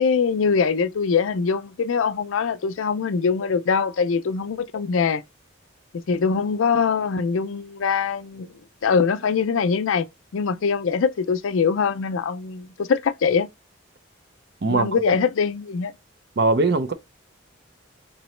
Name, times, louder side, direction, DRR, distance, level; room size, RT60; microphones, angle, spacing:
voice 1, 0.0-5.2 5.9-8.5 8.8-10.1 10.3-13.5 14.7-15.9, left 5 dB, 85° left, 0.4 m, -23 dB
voice 2, 16.4-16.9, right 3 dB, 55° right, 0.5 m, -20 dB
3.8 x 3.0 x 3.1 m
head